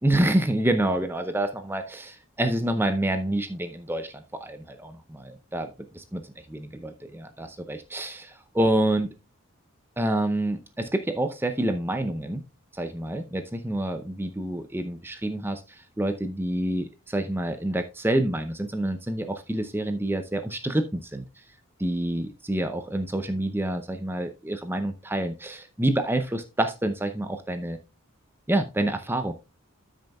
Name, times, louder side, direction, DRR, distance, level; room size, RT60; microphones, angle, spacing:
voice 1, 0.0-4.6 5.2-6.2 6.5-9.1 10.0-12.4 12.7-21.2 21.8-27.8 28.5-29.3, right 1 dB, 10° right, 8 dB, 0.6 m, -27 dB
12.5 x 6.4 x 2.3 m, 0.28 s
head